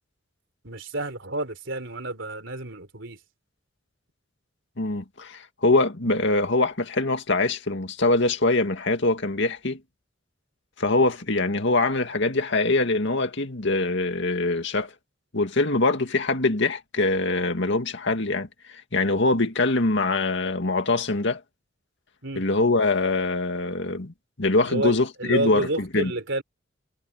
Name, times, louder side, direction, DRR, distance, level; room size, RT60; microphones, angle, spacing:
voice 1, 0.6-3.2 22.2-22.4 24.6-26.4, right 2 dB, 70° right, 4.5 m, -30 dB
voice 2, 4.8-9.8 10.8-14.9 15.3-21.4 22.4-26.1, left 2 dB, 65° left, 2.3 m, -23 dB
head